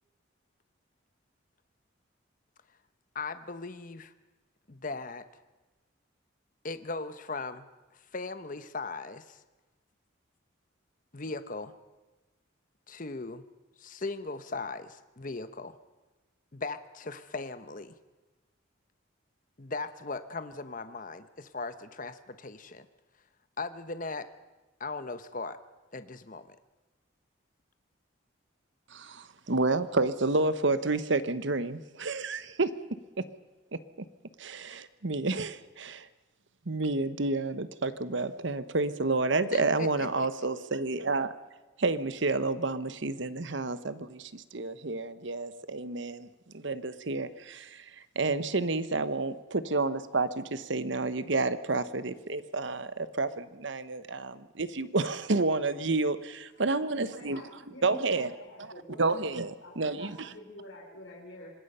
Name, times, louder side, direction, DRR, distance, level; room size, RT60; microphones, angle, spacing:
voice 1, 3.1-4.1 4.7-5.2 6.6-7.7 7.9-9.4 11.1-11.7 12.9-13.4 13.8-15.8 16.5-17.9 19.6-22.9 23.6-24.3 24.8-25.6 25.9-26.6 39.5-40.3, left 3 dB, 40° left, 11 dB, 0.9 m, -38 dB
voice 2, 28.9-32.7 33.2-33.3 34.4-36.1 36.7-41.3 41.8-46.3 46.5-57.4 57.8-58.3 58.6-58.7 59.0-60.3, right 3 dB, 65° right, 13 dB, 1.1 m, -30 dB
voice 3, 56.5-59.2 59.6-61.5, left 1 dB, 70° left, -3 dB, 4.0 m, -48 dB
26.0 x 20.0 x 5.6 m, 1.2 s
head